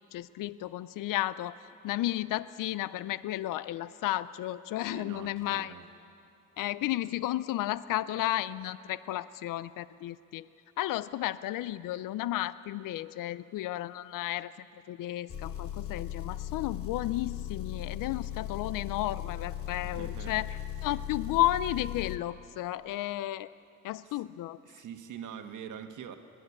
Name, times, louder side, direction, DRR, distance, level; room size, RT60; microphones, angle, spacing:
voice 1, 0.1-1.6 1.8-5.7 6.6-10.5 10.8-14.5 14.9-23.5 23.8-24.6, left 14 dB, 90° left, 17 dB, 0.5 m, -33 dB
voice 2, 4.9-5.9 19.8-20.4 24.0-24.2 24.6-26.2, right 8 dB, 70° right, 6 dB, 1.4 m, -44 dB
Engine, 15.3-22.2, left 11 dB, 45° left, 1.1 m, -38 dB
24.5 x 11.5 x 9.8 m, 2.7 s
cardioid pair, 150°, 31 cm